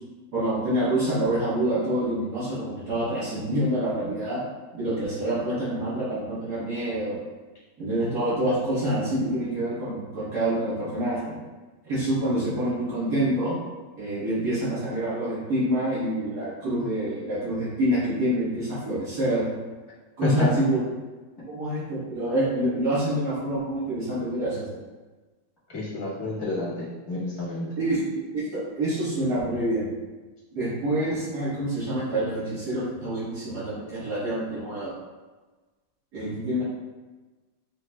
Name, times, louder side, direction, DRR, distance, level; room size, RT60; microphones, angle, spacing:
voice 1, 0.3-4.4 4.7-7.2 7.8-11.3 11.8-13.5 14.0-19.5 20.2-20.8 21.5-24.7 27.8-28.0 28.3-29.9 30.5-34.9 36.1-36.6, right 1 dB, 60° right, -11 dB, 1.8 m, -27 dB
voice 2, 25.7-27.7, left 2 dB, 20° left, -8 dB, 0.9 m, -28 dB
5.7 x 2.5 x 2.2 m, 1.2 s
omnidirectional pair, 2.1 m